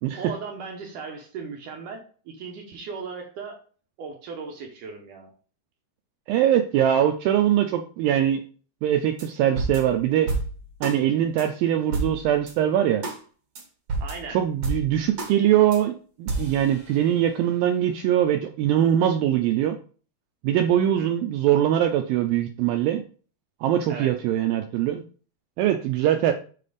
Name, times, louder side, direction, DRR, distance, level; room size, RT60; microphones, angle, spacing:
voice 1, 0.2-3.6 4.0-5.3 14.0-14.4 21.0-21.1 23.9-24.1, right 5 dB, 70° right, 2 dB, 2.1 m, -37 dB
voice 2, 6.3-8.4 8.8-10.3 10.8-13.0 14.3-15.9 16.2-19.8 20.4-23.0 23.6-25.0 25.6-26.3, right 11 dB, 85° right, 5 dB, 2.0 m, -22 dB
sound 1, 9.2-9.3 9.6-11.0 11.4-11.5 11.9-12.5 13.0-13.2 13.5-13.6 13.9-15.3 15.7-15.8 16.3-17.4, right 3 dB, 45° right, 2.6 m, -31 dB
7.5 x 4.2 x 5.0 m, 0.40 s
omnidirectional pair, 4.8 m